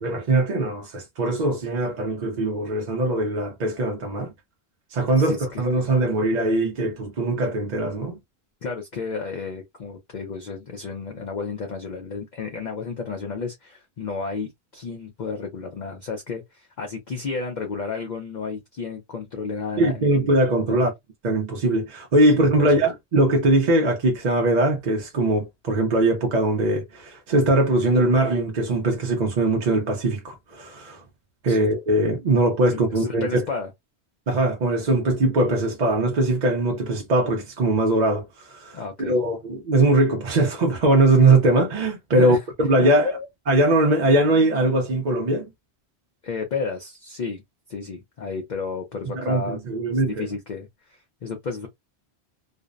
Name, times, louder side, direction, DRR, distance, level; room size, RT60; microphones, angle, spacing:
voice 1, 0.0-4.3 4.9-8.2 19.8-20.9 21.2-31.0 31.4-33.4 34.3-38.8 39.1-43.1 43.5-45.5 49.1-50.3, right 2 dB, 50° right, 0.6 m, -21 dB
voice 2, 5.2-5.7 8.6-20.3 20.7-20.9 22.3-22.8 31.5-31.7 32.7-33.7 38.7-39.2 42.2-42.4 42.8-43.3 46.2-47.4 47.7-49.6 49.9-51.7, left 4 dB, 50° left, 0.6 m, -32 dB
2.5 x 2.0 x 2.4 m
omnidirectional pair, 1.1 m